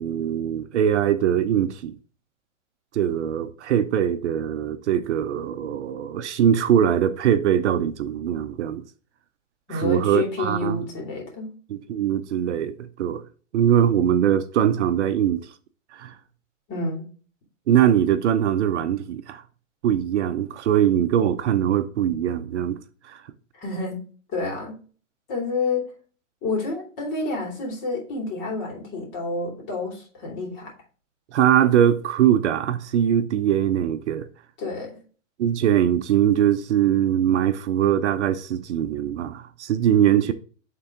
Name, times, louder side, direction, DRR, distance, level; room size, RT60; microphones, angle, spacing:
voice 1, 0.0-1.9 2.9-8.8 9.7-10.8 11.7-13.2 13.5-15.4 15.9-16.1 17.7-19.4 19.8-22.8 23.0-23.2 31.3-34.3 35.4-40.3, right 10 dB, 60° right, 0.7 m, -22 dB
voice 2, 9.7-11.5 16.7-17.0 23.5-24.0 24.3-24.8 25.3-25.9 26.4-30.7 34.6-35.0, left 3 dB, 30° left, 2.8 m, -29 dB
8.6 x 3.8 x 3.7 m
hypercardioid pair, 145°, 39 cm